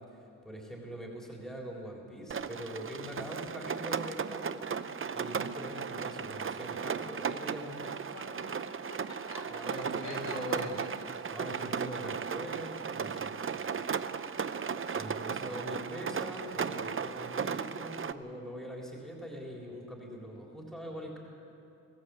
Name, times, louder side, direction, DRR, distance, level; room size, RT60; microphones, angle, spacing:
voice 1, 0.0-4.6 5.1-8.0 9.5-10.7 11.3-13.3 14.9-21.2, equal, ahead, -1 dB, 3.8 m, -42 dB
Rain, 2.3-18.1, right 6 dB, 40° right, 0.7 m, -36 dB
voice 2, 3.1-4.1 8.0-8.6 8.9-11.0 13.8-15.6, left 2 dB, 60° left, 1 dB, 4.3 m, -48 dB
22.5 x 16.5 x 8.4 m, 2.8 s
wide cardioid pair, 125°, 33 cm